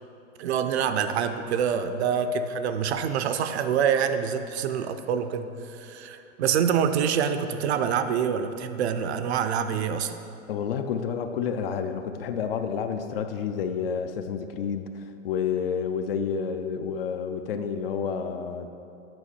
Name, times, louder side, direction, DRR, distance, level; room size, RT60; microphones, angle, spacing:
voice 1, 0.4-10.1, right 7 dB, 55° right, 9 dB, 0.5 m, -26 dB
voice 2, 10.5-14.9 15.2-18.7, left 7 dB, 50° left, 8 dB, 0.5 m, -29 dB
8.8 x 5.2 x 4.2 m, 2.7 s
hypercardioid pair, 140°, 40 cm